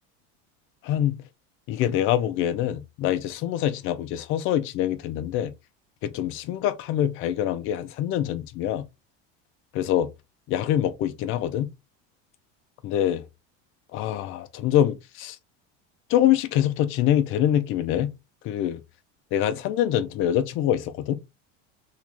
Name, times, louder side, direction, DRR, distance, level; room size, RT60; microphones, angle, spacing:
voice 1, 0.8-1.2 1.7-5.5 6.0-8.8 9.7-10.1 10.5-11.7 12.8-13.2 13.9-15.4 16.1-18.1 18.4-18.8 19.3-21.2, left 11 dB, 40° left, 0.5 m, -25 dB
3.1 x 3.0 x 3.7 m
cardioid pair, 170°, 33 cm